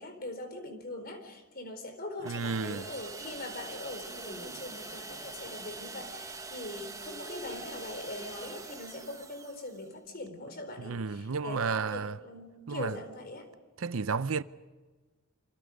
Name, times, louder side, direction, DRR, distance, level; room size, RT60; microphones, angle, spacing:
voice 1, 0.0-13.5, left 1 dB, 45° left, 4.2 m, -42 dB
voice 2, 2.2-2.9 10.8-12.2 12.7-13.0 13.8-14.4, right 5 dB, 70° right, 0.7 m, -32 dB
sound 1, 2.3-9.9, right 3 dB, 15° right, 1.4 m, -44 dB
sound 2, 2.5-8.6, equal, 20° left, 5.6 m, -52 dB
28.5 x 26.5 x 5.3 m
head